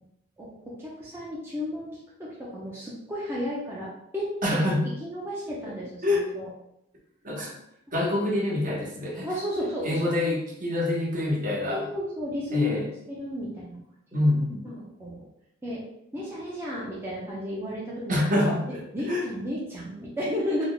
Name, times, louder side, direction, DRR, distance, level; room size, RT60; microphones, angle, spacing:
voice 1, 0.4-4.6 5.0-6.5 9.2-10.1 11.7-12.7 13.1-13.8 14.6-15.3 15.6-15.8 16.1-18.2 18.9-20.6, left 1 dB, 10° right, -7 dB, 0.6 m, -33 dB
voice 2, 4.4-4.8 5.6-5.7 6.0-6.3 7.2-7.5 7.9-9.3 9.8-11.8 12.5-12.9 14.1-14.6 18.1-18.8 19.1-19.2, left 1 dB, 45° right, -3 dB, 1.0 m, -26 dB
3.3 x 2.2 x 3.8 m, 0.79 s
head